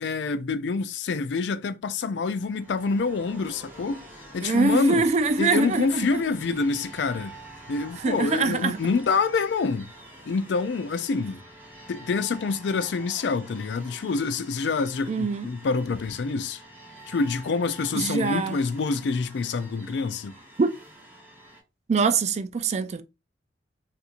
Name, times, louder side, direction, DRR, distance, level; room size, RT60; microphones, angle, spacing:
voice 1, 0.0-4.0 4.3-5.0 5.4-7.3 7.7-9.9 10.3-11.4 11.9-16.6 17.1-20.3, left 4 dB, 75° left, 0.4 m, -26 dB
sound 1, 2.2-21.6, right 1 dB, 10° right, 1.2 m, -47 dB
voice 2, 4.4-6.1 8.0-8.8 15.1-15.5 17.9-18.6 20.6-20.7 21.9-23.0, right 4 dB, 40° right, 0.4 m, -24 dB
4.3 x 2.5 x 2.5 m
head